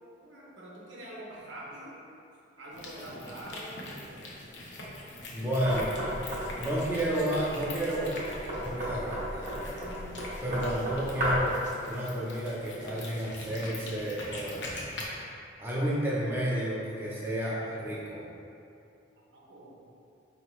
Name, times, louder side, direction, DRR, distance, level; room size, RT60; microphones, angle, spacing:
voice 1, 0.2-2.0 2.6-4.3 19.3-19.8, right 1 dB, 75° right, -5 dB, 0.9 m, -45 dB
sound 1, 2.7-15.0, left 2 dB, 65° left, 0.7 m, -44 dB
voice 2, 5.3-6.0 6.6-8.1 8.6-11.5 11.8-14.8 15.6-18.2, right 1 dB, 10° right, -8 dB, 0.5 m, -31 dB
Knock, 5.6-11.6, equal, 45° right, 0.9 m, -34 dB
4.5 x 3.0 x 3.1 m, 2.6 s
head